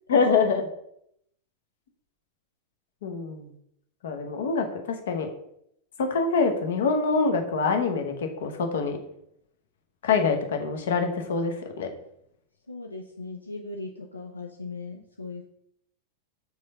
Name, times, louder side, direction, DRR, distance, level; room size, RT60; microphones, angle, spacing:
voice 1, 0.1-0.6 3.0-3.5 4.0-5.3 6.0-9.0 10.0-11.9, left 4 dB, 60° left, 5 dB, 1.0 m, -25 dB
voice 2, 12.7-15.5, left 3 dB, 80° left, 1 dB, 0.5 m, -38 dB
4.8 x 4.0 x 5.5 m, 0.75 s
figure-of-eight pair, 90°, 0 cm